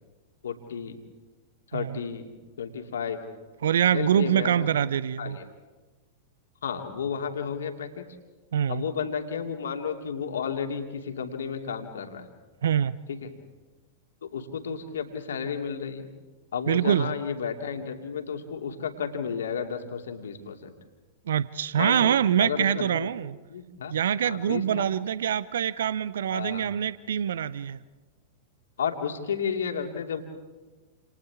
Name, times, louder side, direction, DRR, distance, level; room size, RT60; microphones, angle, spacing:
voice 1, 0.4-1.0 1.7-2.3 2.6-3.2 3.9-4.7 5.2-5.3 6.6-8.0 8.7-12.3 14.2-16.1 16.5-20.7 21.8-22.1 22.4-23.1 23.5-23.9 24.2-24.8 26.3-26.6 28.8-30.2, left 6 dB, 65° left, 4 dB, 2.7 m, -32 dB
voice 2, 3.6-5.4 8.5-8.8 12.6-13.0 16.7-17.1 21.3-23.4 23.9-27.8, right 9 dB, 65° right, 19 dB, 0.6 m, -25 dB
29.5 x 28.5 x 3.6 m, 1.3 s
figure-of-eight pair, 95°, 0 cm